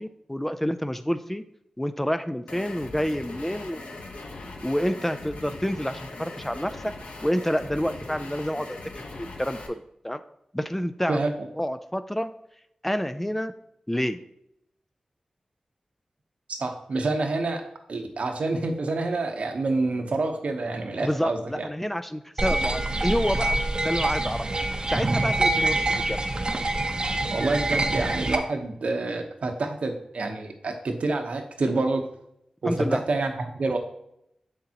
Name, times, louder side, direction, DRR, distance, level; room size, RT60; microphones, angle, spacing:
voice 1, 0.0-1.4 1.8-4.0 4.6-6.7 7.2-8.8 9.1-10.2 10.5-11.2 11.6-12.3 12.8-13.5 13.9-14.2 21.0-23.6 23.8-24.5 24.9-26.2 32.7-33.0, equal, 10° left, 10 dB, 0.4 m, -28 dB
sound 1, 2.5-9.7, left 2 dB, 80° left, 0.8 m, -40 dB
voice 2, 16.5-21.7 27.3-32.0 32.6-33.8, right 3 dB, 75° right, 4 dB, 0.9 m, -28 dB
sound 2, 22.4-28.4, right 2 dB, 40° right, 0.8 m, -25 dB
7.2 x 6.5 x 2.9 m, 0.76 s
cardioid pair, 45°, 2 cm